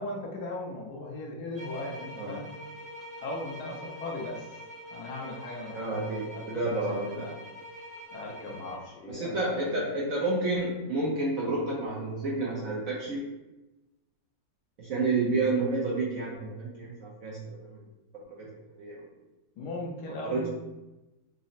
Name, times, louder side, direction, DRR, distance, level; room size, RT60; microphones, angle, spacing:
voice 1, 0.0-2.5 3.2-4.5 4.9-6.0 6.3-6.7 7.0-7.3 8.1-9.4 9.7-9.9 19.6-20.5, left 2 dB, 65° left, -2 dB, 1.1 m, -38 dB
sound 1, 1.6-8.9, equal, 30° left, 0.5 m, -44 dB
voice 2, 5.7-7.3 9.1-13.3 14.8-17.7 18.1-18.5 18.8-19.0 20.2-20.5, right 2 dB, 65° right, -4 dB, 0.8 m, -30 dB
4.0 x 2.0 x 3.9 m, 1.0 s
omnidirectional pair, 2.0 m